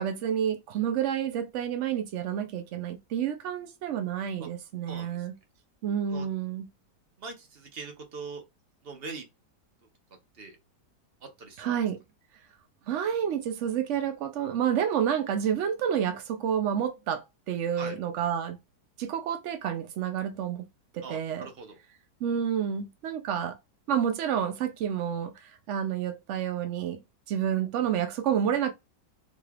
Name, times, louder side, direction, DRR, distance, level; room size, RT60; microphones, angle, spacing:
voice 1, 0.0-5.3 5.8-6.7 11.6-12.0 12.9-18.6 19.0-20.7 20.9-21.5 22.2-23.6 23.9-27.0 27.3-28.7, right 9 dB, 85° right, 0.6 m, -29 dB
voice 2, 4.9-5.3 6.0-6.3 7.2-8.4 8.8-9.3 10.3-10.6 11.2-11.7 17.8-17.9 21.0-21.8, right 4 dB, 40° right, 1.0 m, -42 dB
3.7 x 3.2 x 2.4 m
omnidirectional pair, 1.8 m